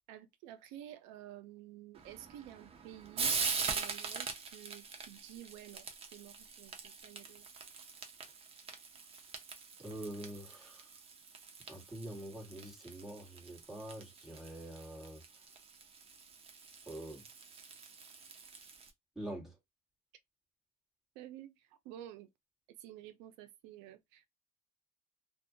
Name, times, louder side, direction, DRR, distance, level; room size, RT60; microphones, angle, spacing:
voice 1, 0.1-7.5 21.2-22.3 22.8-24.3, right 12 dB, 85° right, 0.4 m, -51 dB
Frying (food), 1.9-18.9, right 5 dB, 35° right, 0.7 m, -43 dB
voice 2, 9.8-10.8 11.7-15.2 16.8-17.2 19.1-19.6, right 1 dB, ahead, 1.4 m, -45 dB
2.5 x 2.2 x 2.6 m
cardioid pair, 115°, 18 cm